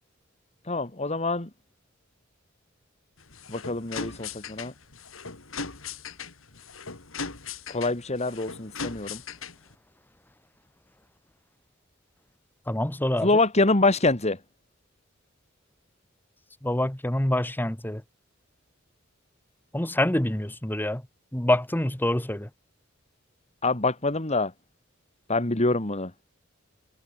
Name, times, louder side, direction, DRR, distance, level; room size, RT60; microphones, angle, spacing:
voice 1, 0.7-1.5 3.5-4.7 7.7-9.2 13.2-14.4 23.6-24.5 25.3-26.1, left 2 dB, 35° left, 2.3 m, -25 dB
sound 1, 3.2-9.7, left 5 dB, 80° left, 3.5 m, -39 dB
voice 2, 12.7-13.3 16.6-18.0 19.7-21.0 21.3-22.5, left 1 dB, 10° left, 1.1 m, -26 dB
head